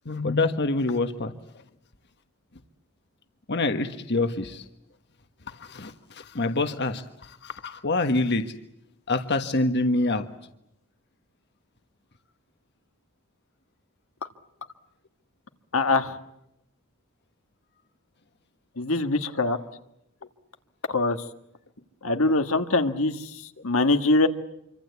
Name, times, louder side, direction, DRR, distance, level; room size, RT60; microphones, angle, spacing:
voice 1, 0.0-1.3 3.5-4.6 5.6-8.4 9.1-10.3, left 2 dB, 55° left, 8 dB, 1.5 m, -26 dB
voice 2, 15.7-16.2 18.8-19.6 20.9-21.2 22.0-23.1 23.6-24.3, left 2 dB, 80° left, 7 dB, 1.7 m, -22 dB
26.5 x 25.0 x 8.3 m, 0.80 s
head